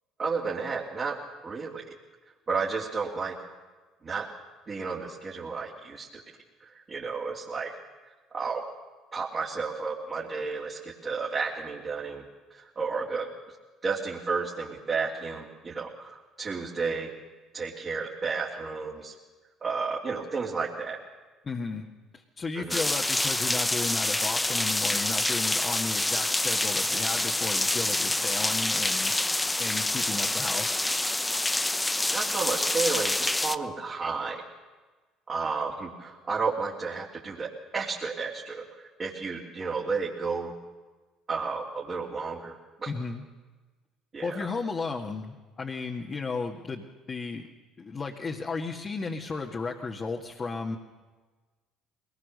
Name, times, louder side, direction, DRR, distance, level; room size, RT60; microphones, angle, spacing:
voice 1, 0.2-1.2 1.4-1.8 2.5-3.4 4.0-4.3 4.7-6.2 6.7-7.8 8.3-8.6 9.1-12.3 12.5-13.3 13.8-17.1 17.5-19.1 19.6-21.0 22.5-22.8 32.1-34.4 35.3-38.6 39.0-40.5 41.3-42.9 44.1-44.4, right 4 dB, 35° right, -4 dB, 3.2 m, -32 dB
voice 2, 21.4-21.9 22.1-29.1 29.6-30.8 42.9-43.2 44.2-47.4 47.8-50.8, left 4 dB, 35° left, 0 dB, 1.9 m, -34 dB
sound 1, 22.7-33.6, left 2 dB, 10° left, 0.8 m, -27 dB
22.0 x 19.5 x 6.7 m, 1.3 s
hypercardioid pair, 60°, 0 cm